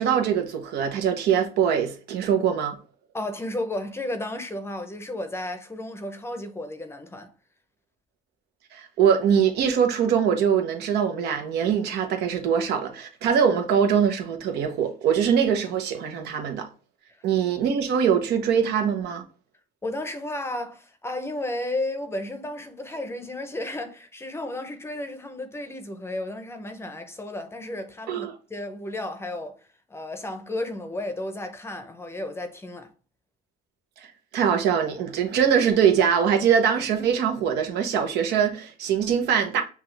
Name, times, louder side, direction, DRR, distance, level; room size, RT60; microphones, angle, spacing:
voice 1, 0.0-2.8 8.7-16.7 17.2-19.2 28.1-28.3 34.3-39.6, right 7 dB, 80° right, 0.9 m, -23 dB
voice 2, 3.1-7.3 19.8-32.9, left 1 dB, 15° left, 0.6 m, -33 dB
5.8 x 2.4 x 3.2 m
cardioid pair, 110°, 17 cm